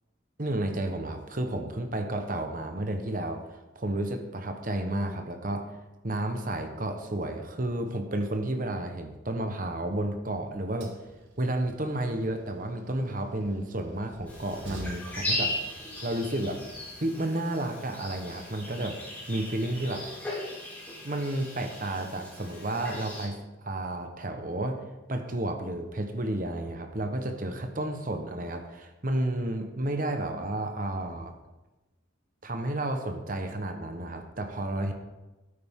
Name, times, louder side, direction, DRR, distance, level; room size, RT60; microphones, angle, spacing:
voice 1, 0.4-3.4 3.7-5.6 6.0-10.9 11.4-15.5 16.0-16.6 17.0-19.0 19.3-20.0 21.0-23.4 23.6-24.8 25.1-31.3 32.4-34.9, right 1 dB, 40° right, 5 dB, 1.1 m, -31 dB
Train, 9.4-17.1, equal, 65° right, 2.1 m, -50 dB
sound 1, 14.3-23.3, left 1 dB, 10° left, 3.7 m, -37 dB
13.0 x 9.7 x 3.7 m, 1.1 s
head